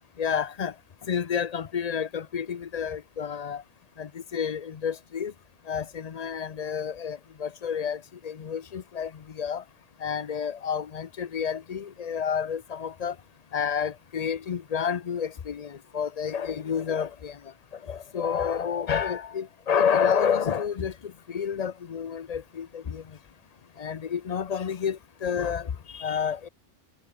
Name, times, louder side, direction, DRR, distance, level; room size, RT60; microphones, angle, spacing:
voice 1, 0.2-0.7 1.1-3.6 4.0-5.3 5.7-9.6 10.0-13.1 13.5-17.4 17.9-23.0 23.8-26.5, left 7 dB, 45° left, 0.6 m, -29 dB
omnidirectional pair, 1.3 m